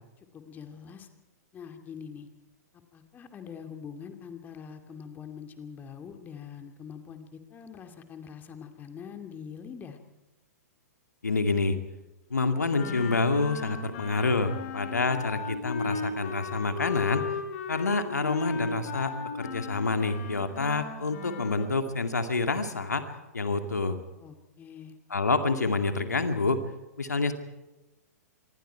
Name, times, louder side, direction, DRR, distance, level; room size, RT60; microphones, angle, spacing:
voice 1, 0.2-1.1 1.5-2.3 2.9-10.0 24.2-25.0, left 7 dB, 20° left, 6 dB, 2.5 m, -44 dB
voice 2, 11.2-11.8 12.3-17.3 17.7-24.0 25.1-26.6 27.0-27.3, left 3 dB, 80° left, 7 dB, 2.3 m, -27 dB
Wind instrument woodwind instrument, 12.7-21.7, left 5 dB, 45° left, 5.1 m, -36 dB
26.5 x 23.5 x 4.7 m, 1.0 s
figure-of-eight pair, 110°, 9 cm